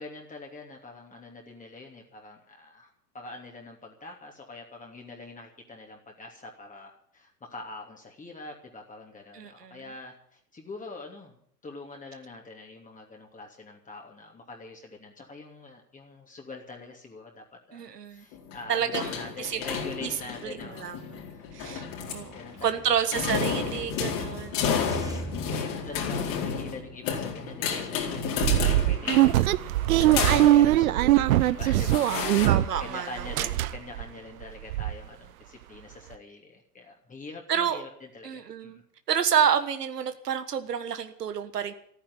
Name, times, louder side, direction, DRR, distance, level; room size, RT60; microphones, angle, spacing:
voice 1, 0.0-11.4 11.6-20.9 21.3-23.1 24.8-38.8, left 3 dB, 15° left, 1 dB, 2.9 m, -44 dB
voice 2, 9.3-9.8 17.7-18.2 18.7-19.1 19.4-19.6 20.0-20.1 20.4-21.2 21.5-22.3 22.6-24.8 32.4-33.3 37.5-37.8 38.2-38.8 39.1-41.7, right 8 dB, 75° right, 9 dB, 1.5 m, -29 dB
sound 1, 18.3-22.8 23.1-30.7 31.4-32.5, left 6 dB, 45° left, 4.3 m, -32 dB
sound 2, 21.6-26.7, right 2 dB, 5° right, 1.9 m, -43 dB
sound 3, 28.4-32.9 33.2-34.0 34.4-34.5 34.7-34.9, right 14 dB, 60° right, 0.8 m, -21 dB
15.0 x 9.3 x 9.8 m, 0.64 s
figure-of-eight pair, 90°, 48 cm